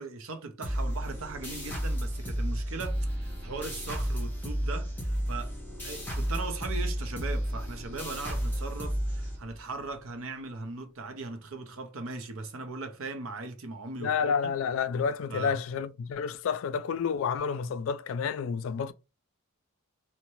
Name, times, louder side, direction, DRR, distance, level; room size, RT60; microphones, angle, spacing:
voice 1, 0.0-5.5 5.8-14.5 15.3-15.6, right 3 dB, 70° right, 0.6 m, -39 dB
sound 1, 0.6-9.8, equal, 10° left, 0.8 m, -32 dB
voice 2, 14.0-18.9, left 6 dB, 65° left, 0.3 m, -30 dB
2.6 x 2.1 x 3.0 m
head